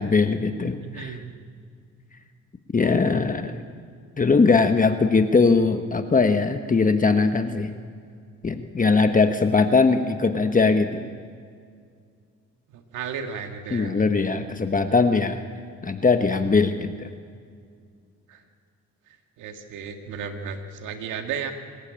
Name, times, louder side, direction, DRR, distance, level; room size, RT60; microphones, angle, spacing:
voice 1, 0.0-1.2 2.7-3.6 4.2-7.7 8.4-11.1 13.7-15.4 15.8-17.1, left 4 dB, 25° left, 7 dB, 1.2 m, -20 dB
voice 2, 0.8-1.3 12.7-14.0 18.3-18.4 19.4-21.5, right 6 dB, 90° right, 5 dB, 1.9 m, -34 dB
26.0 x 15.5 x 8.8 m, 2.2 s
cardioid pair, 90°, 30 cm